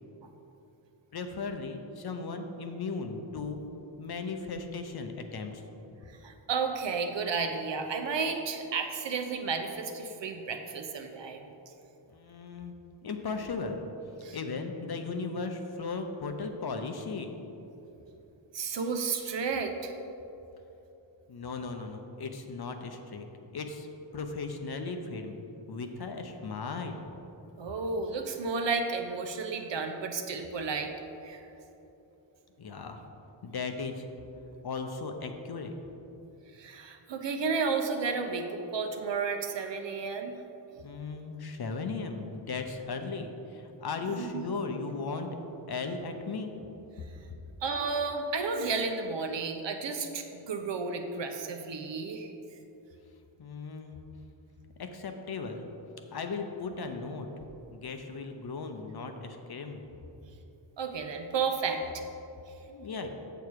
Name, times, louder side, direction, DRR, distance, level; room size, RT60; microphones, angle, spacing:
voice 1, 1.1-3.6 4.0-5.6 12.1-12.7 13.0-13.8 14.3-17.3 21.3-23.3 23.5-23.9 24.1-25.4 25.7-27.0 32.6-33.0 33.4-34.1 34.6-35.7 40.8-45.3 45.7-46.5 53.4-54.0 54.8-55.7 56.1-57.3 57.7-59.8 62.7-63.1, left 4 dB, 55° left, 5 dB, 0.8 m, -36 dB
voice 2, 6.1-11.5 14.2-14.4 18.5-19.9 27.6-30.9 31.2-31.4 36.5-40.3 44.0-44.4 47.6-52.3 60.8-61.8, right 4 dB, 65° right, 5 dB, 0.9 m, -32 dB
7.1 x 6.9 x 4.7 m, 3.0 s
wide cardioid pair, 85°, 46 cm